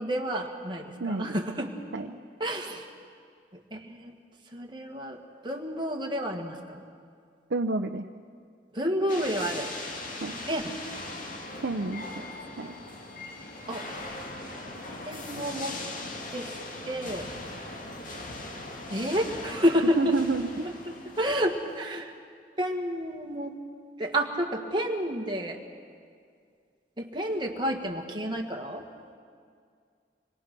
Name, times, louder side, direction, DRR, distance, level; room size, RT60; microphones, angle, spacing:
voice 1, 0.0-2.1 2.4-2.9 3.7-4.1 4.5-6.8 8.7-9.7 10.5-10.7 13.7-13.8 15.0-15.7 16.3-16.5 16.9-17.3 18.9-20.2 21.2-22.1 22.6-23.5 24.0-25.6 27.0-28.8, equal, 25° right, 1 dB, 1.8 m, -30 dB
voice 2, 1.0-1.4 1.9-2.2 7.5-8.0 10.2-10.4 11.6-12.2 12.6-12.7 20.0-20.7, right 3 dB, 75° right, 5 dB, 0.7 m, -29 dB
sound 1, 9.1-21.8, left 2 dB, 50° left, 2.2 m, -40 dB
26.0 x 22.0 x 6.1 m, 2.2 s
head